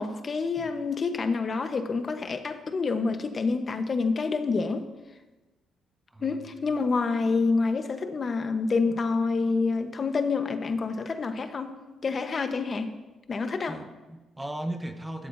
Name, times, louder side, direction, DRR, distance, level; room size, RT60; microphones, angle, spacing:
voice 1, 0.0-4.9 6.2-11.7 12.0-12.9 13.3-13.8, left 4 dB, 40° left, 7 dB, 1.0 m, -27 dB
voice 2, 6.1-6.4 13.7-15.3, right 1 dB, 10° right, 6 dB, 0.9 m, -37 dB
15.5 x 13.0 x 2.7 m, 1.2 s
cardioid pair, 90°, 0 cm